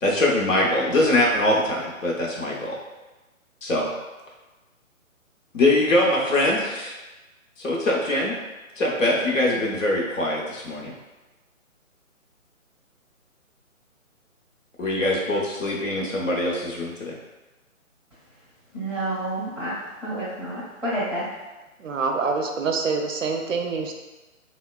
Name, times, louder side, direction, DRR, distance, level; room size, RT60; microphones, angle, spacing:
voice 1, 0.0-2.8 3.6-3.9 5.5-6.9 7.6-8.3 8.8-11.0 14.8-17.2, left 1 dB, 65° left, -3 dB, 0.8 m, -23 dB
voice 2, 18.7-21.3, right 1 dB, ahead, -14 dB, 0.5 m, -29 dB
voice 3, 21.8-23.9, right 4 dB, 65° right, 3 dB, 0.5 m, -26 dB
2.9 x 2.1 x 2.3 m, 1.1 s
figure-of-eight pair, 140°, 41 cm